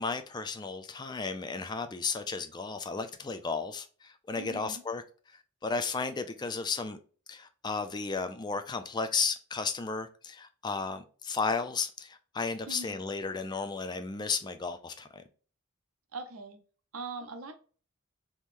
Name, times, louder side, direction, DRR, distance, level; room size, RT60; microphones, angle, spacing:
voice 1, 0.0-5.0 5.3-7.0 7.3-15.2, left 4 dB, 20° left, 0.4 m, -34 dB
voice 2, 4.3-4.8 12.7-13.0 16.1-16.6 16.9-17.5, right 3 dB, 85° right, 0.8 m, -41 dB
3.6 x 3.0 x 2.5 m
head